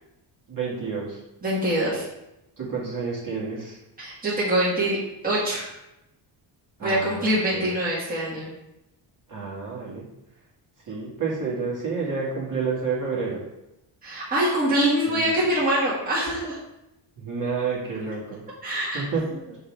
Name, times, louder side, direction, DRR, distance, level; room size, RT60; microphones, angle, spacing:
voice 1, 0.5-1.2 2.6-3.8 6.8-7.7 9.3-10.1 10.9-13.4 15.1-15.3 17.2-18.4 18.9-19.3, right 4 dB, 45° right, -5 dB, 2.1 m, -29 dB
voice 2, 1.4-2.0 4.0-5.0 5.2-5.8 6.8-8.5 14.0-16.6 18.6-19.0, right 1 dB, 20° right, -7 dB, 1.8 m, -24 dB
5.6 x 4.0 x 4.7 m, 0.89 s
cardioid pair, 135°, 46 cm